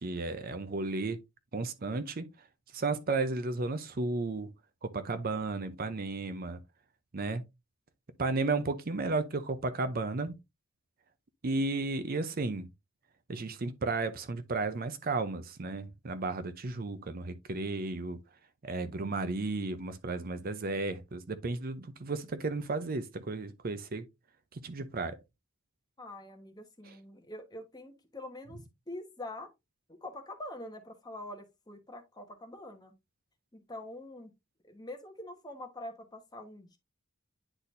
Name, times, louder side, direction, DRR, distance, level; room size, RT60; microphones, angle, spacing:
voice 1, 0.0-1.2 1.5-2.3 2.7-4.5 4.8-6.6 7.1-7.4 8.2-10.3 11.4-12.7 13.3-18.2 18.6-24.1 24.5-25.2, right 3 dB, 40° right, 0.6 m, -33 dB
voice 2, 26.0-29.5 29.9-32.9 33.5-34.3 34.6-36.8, left 1 dB, 20° left, 1.2 m, -45 dB
9.9 x 4.2 x 2.6 m
head